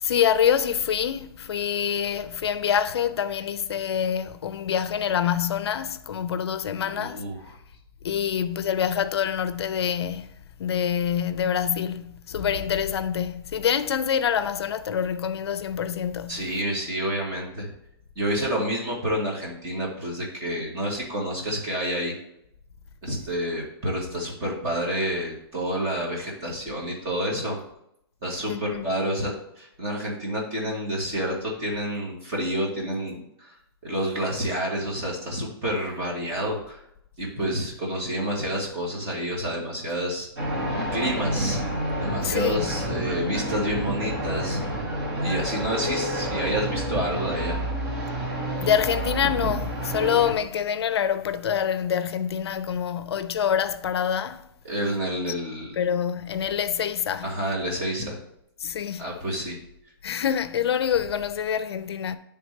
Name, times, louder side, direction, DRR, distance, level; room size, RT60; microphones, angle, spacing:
voice 1, 0.0-7.2 8.0-10.3 10.6-16.4 28.5-29.0 42.2-42.7 48.6-54.4 55.2-55.3 55.8-57.3 58.6-59.1 60.0-62.2, left 8 dB, 80° left, 0.5 m, -26 dB
voice 2, 6.8-7.4 16.3-17.7 18.1-22.1 23.0-27.6 28.2-33.5 33.8-36.8 37.2-40.3 40.9-41.6 42.0-44.9 45.2-47.6 54.6-55.8 57.2-58.2 59.0-59.6, equal, 20° right, 1.5 m, -29 dB
sound 1, 40.4-50.3, equal, 35° right, 2.5 m, -29 dB
9.8 x 3.5 x 3.2 m
hypercardioid pair, 170°, 13 cm